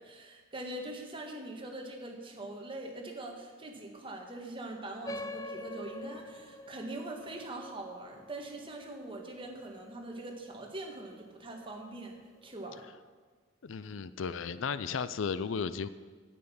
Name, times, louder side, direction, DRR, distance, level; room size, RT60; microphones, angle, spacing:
voice 1, 0.0-12.9, right 2 dB, 25° right, 1 dB, 1.7 m, -43 dB
sound 1, 5.1-10.0, left 2 dB, 15° left, 0.5 m, -45 dB
voice 2, 13.6-15.9, left 6 dB, 70° left, 15 dB, 0.5 m, -34 dB
10.0 x 9.1 x 7.1 m, 1.5 s
head